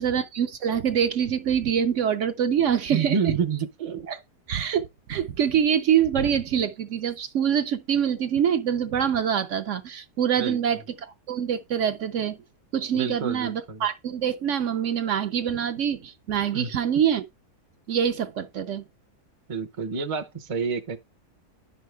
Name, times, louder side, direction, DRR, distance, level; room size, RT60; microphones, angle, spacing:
voice 1, 0.0-3.3 4.1-4.2 4.5-12.4 12.7-17.2 17.9-18.8, right 8 dB, 60° right, 0.8 m, -25 dB
voice 2, 2.9-4.1 10.4-10.6 12.9-13.8 16.5-16.7 19.5-21.0, right 6 dB, 35° right, 0.5 m, -28 dB
10.5 x 5.6 x 3.3 m
omnidirectional pair, 1.7 m